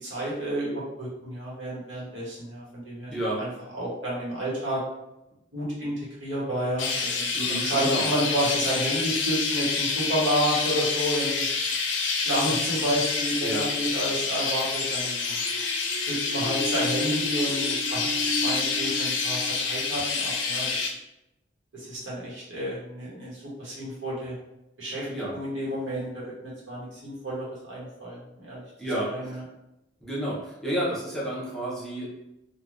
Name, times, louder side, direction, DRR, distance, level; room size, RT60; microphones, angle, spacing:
voice 1, 0.0-3.1 3.4-4.8 5.5-5.9 6.2-11.4 12.2-15.4 16.0-19.4 19.6-20.9 21.7-24.3 24.8-25.1 25.3-28.6 29.1-29.4, equal, 85° right, -6 dB, 1.1 m, -30 dB
voice 2, 3.1-3.4 7.3-8.1 13.4-13.6 25.1-25.3 28.8-29.4 30.0-32.0, right 1 dB, ahead, -7 dB, 0.8 m, -31 dB
Chirp tweet, 6.8-20.9, left 4 dB, 75° left, 0.5 m, -28 dB
sound 1, 14.8-20.5, right 1 dB, 45° right, 0.5 m, -36 dB
3.2 x 2.3 x 2.5 m, 0.89 s
head